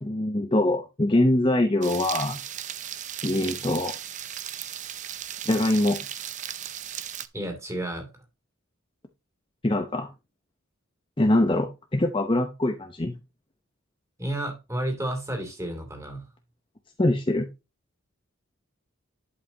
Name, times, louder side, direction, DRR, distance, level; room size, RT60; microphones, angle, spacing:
voice 1, 0.0-2.4 3.2-3.9 5.4-6.0 9.6-10.1 11.2-13.1 17.0-17.5, left 1 dB, 25° left, 0.8 m, -23 dB
sound 1, 1.8-7.3, right 10 dB, 35° right, 0.5 m, -36 dB
voice 2, 7.3-8.2 14.2-16.3, right 1 dB, 15° right, 2.7 m, -31 dB
11.5 x 5.6 x 2.8 m
head